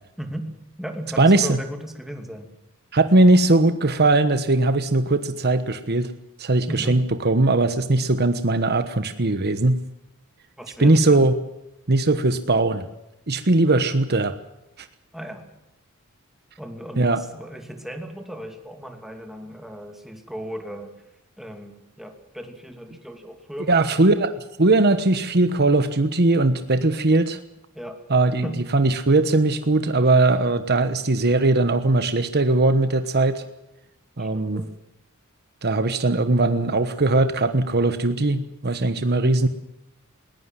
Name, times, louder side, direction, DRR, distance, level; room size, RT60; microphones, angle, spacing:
voice 1, 0.2-0.5 0.8-2.5 6.7-7.0 10.6-11.3 15.1-15.4 16.6-20.9 21.4-24.2 27.7-28.0 28.4-28.7 34.2-34.7, equal, ahead, 5 dB, 2.7 m, -36 dB
voice 2, 1.2-1.6 2.9-6.1 6.4-9.8 10.8-11.3 11.9-12.9 13.3-14.3 14.8-14.9 17.0-17.2 23.7-27.4 28.1-28.5 28.7-33.4 34.2-34.6 35.6-39.5, right 2 dB, 50° right, 10 dB, 1.2 m, -19 dB
20.5 x 20.0 x 7.6 m, 0.89 s
head